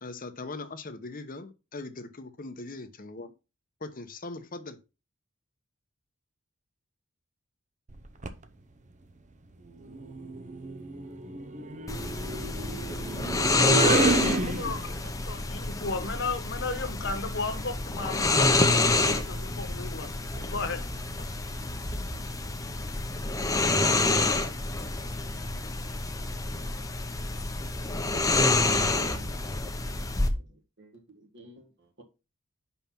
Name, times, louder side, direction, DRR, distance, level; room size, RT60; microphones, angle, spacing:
voice 1, 0.0-3.3 3.8-4.8 14.2-14.6, left 3 dB, 40° left, 0.9 m, -40 dB
sound 1, 7.9-8.4 9.8-15.1, right 2 dB, 35° right, 0.7 m, -30 dB
sound 2, 11.9-30.3, left 2 dB, 15° left, 0.8 m, -28 dB
voice 2, 14.3-14.9 15.3-20.8, left 3 dB, 55° left, 1.5 m, -35 dB
voice 3, 28.4-29.3 30.1-32.0, right 3 dB, 55° right, 1.9 m, -47 dB
5.8 x 5.5 x 5.9 m
head